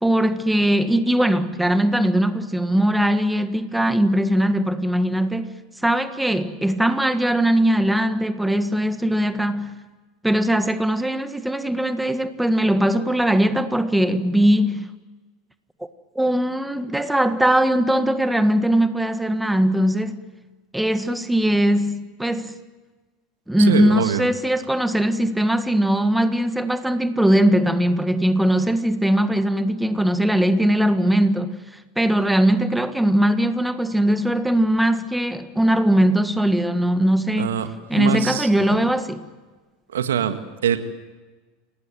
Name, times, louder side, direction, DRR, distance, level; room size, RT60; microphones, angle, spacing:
voice 1, 0.0-9.8 10.2-14.9 16.2-20.2 20.7-22.5 23.5-31.6 32.0-37.6 37.9-39.2, right 1 dB, 5° right, 11 dB, 1.6 m, -20 dB
voice 2, 23.7-24.3 37.4-38.8 39.9-40.8, right 8 dB, 70° right, 9 dB, 1.9 m, -24 dB
28.0 x 19.0 x 9.3 m, 1.3 s
figure-of-eight pair, 80°, 0 cm